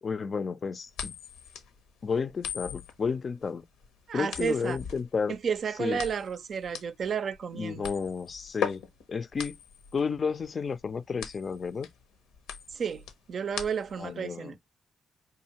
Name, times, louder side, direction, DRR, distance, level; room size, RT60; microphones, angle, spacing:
voice 1, 0.0-1.1 2.0-3.6 4.1-5.4 5.8-6.0 7.5-8.8 9.1-9.6 9.9-11.9 14.0-14.5, left 5 dB, 50° left, 0.4 m, -32 dB
sound 1, 0.9-14.1, left 8 dB, 85° left, 0.7 m, -39 dB
voice 2, 4.1-4.8 5.3-7.9 12.7-14.6, right 6 dB, 60° right, 0.4 m, -32 dB
4.8 x 2.6 x 2.8 m
hypercardioid pair, 45°, 0 cm